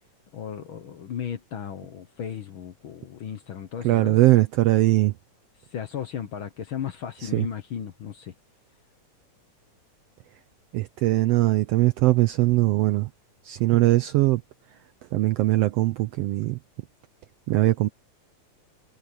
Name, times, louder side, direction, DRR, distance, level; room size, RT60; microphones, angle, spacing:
voice 1, 0.3-4.2 5.7-8.3, left 8 dB, 55° left, 1.5 m, -35 dB
voice 2, 3.8-5.1 7.2-7.5 10.7-13.1 13.4-14.4 15.1-16.6 17.5-17.9, right 17 dB, 80° right, 1.4 m, -21 dB
omnidirectional pair, 3.4 m